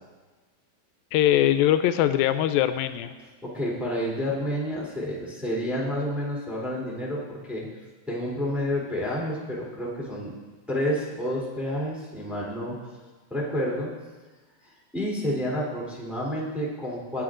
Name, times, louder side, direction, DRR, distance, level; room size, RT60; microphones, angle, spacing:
voice 1, 1.1-3.1, left 12 dB, 85° left, 10 dB, 2.4 m, -22 dB
voice 2, 3.4-7.7 8.1-10.3 10.7-12.8 13.3-13.9 14.9-17.2, equal, ahead, -5 dB, 2.8 m, -29 dB
23.0 x 8.8 x 3.8 m, 1.3 s
omnidirectional pair, 4.1 m